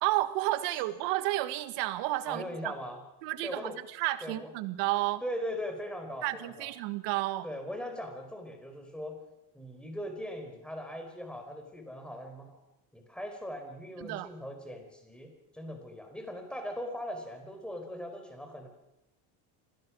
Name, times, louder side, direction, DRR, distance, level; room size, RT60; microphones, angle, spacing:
voice 1, 0.0-2.7 3.2-5.2 6.2-7.5 14.0-14.3, right 17 dB, 75° right, 12 dB, 1.7 m, -31 dB
voice 2, 2.3-3.0 3.4-3.8 4.2-4.5 5.2-6.7 7.4-9.2 9.5-12.6 12.9-18.7, equal, ahead, 4 dB, 4.4 m, -40 dB
25.5 x 18.0 x 6.2 m, 0.91 s
cardioid pair, 150°, 42 cm